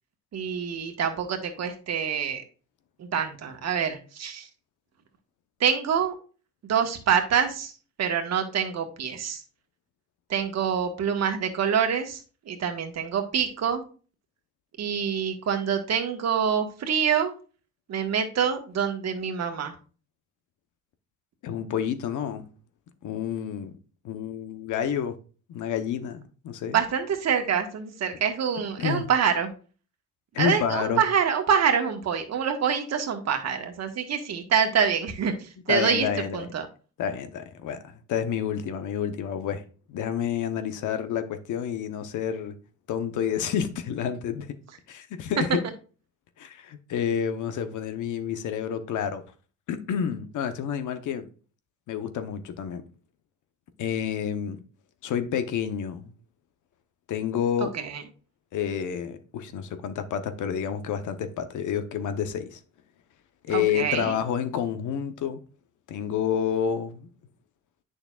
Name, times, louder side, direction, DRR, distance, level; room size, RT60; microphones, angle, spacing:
voice 1, 0.3-2.4 3.0-4.5 5.6-6.1 6.7-7.7 8.0-9.4 10.3-12.2 12.5-13.8 14.8-17.3 17.9-19.7 26.7-29.5 30.4-35.3 35.7-36.1 36.3-36.7 57.7-58.0 63.5-64.2, right 7 dB, 60° right, 1.5 m, -26 dB
voice 2, 21.4-22.5 23.0-23.7 24.0-25.2 25.5-26.8 28.8-29.1 30.3-31.0 35.7-36.5 37.0-37.8 38.1-39.6 39.9-42.6 42.9-44.6 44.9-45.6 46.4-49.2 49.7-51.3 51.9-52.8 53.8-54.6 55.0-56.1 57.1-57.7 58.5-62.6 63.4-65.4 65.9-67.1, left 8 dB, 80° left, 0.9 m, -29 dB
8.6 x 6.5 x 2.4 m
cardioid pair, 90°, 30 cm